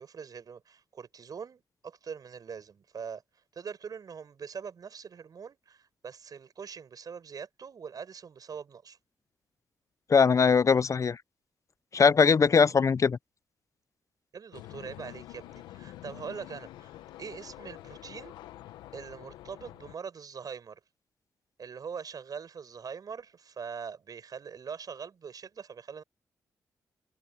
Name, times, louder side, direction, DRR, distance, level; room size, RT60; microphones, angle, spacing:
voice 1, 0.0-3.2 3.6-9.0 14.3-18.4 18.9-20.8 21.6-26.0, right 6 dB, 60° right, 7.0 m, -42 dB
voice 2, 10.1-11.2 11.9-13.2, left 5 dB, 45° left, 0.5 m, -21 dB
sound 1, 14.5-19.9, left 14 dB, 90° left, 1.0 m, -47 dB
supercardioid pair, 50°, 7 cm